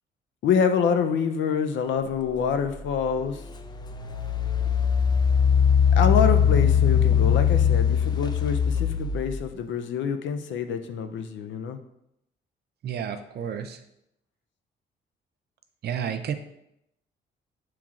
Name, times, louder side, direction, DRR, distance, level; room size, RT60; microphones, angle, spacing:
voice 1, 0.4-3.4 6.0-11.8, left 6 dB, 70° left, 8 dB, 0.5 m, -26 dB
Engine, 2.8-2.9 3.5-9.4, left 7 dB, 20° left, 0.4 m, -21 dB
voice 2, 12.8-13.8 15.8-16.3, right 8 dB, 55° right, 8 dB, 0.5 m, -31 dB
7.1 x 3.0 x 2.4 m, 0.80 s
cardioid pair, 90°, 20 cm